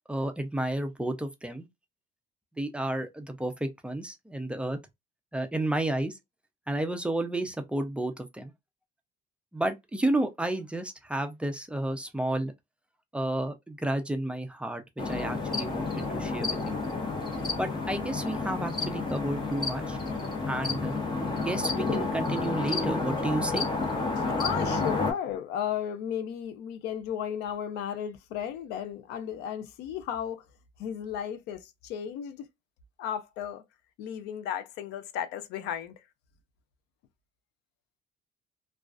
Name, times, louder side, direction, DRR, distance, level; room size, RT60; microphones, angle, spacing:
voice 1, 0.1-1.7 2.6-4.8 5.3-6.2 6.7-8.5 9.5-12.5 13.1-16.8 17.6-20.0 20.5-21.0 21.4-23.7, right 1 dB, 5° right, 0.4 m, -31 dB
sound 1, 15.0-25.1, left 3 dB, 25° left, 0.9 m, -30 dB
voice 2, 24.2-30.4 30.8-32.5 33.0-33.6 34.0-36.0, left 9 dB, 90° left, 0.5 m, -34 dB
2.3 x 2.3 x 2.3 m
cardioid pair, 110°, 17 cm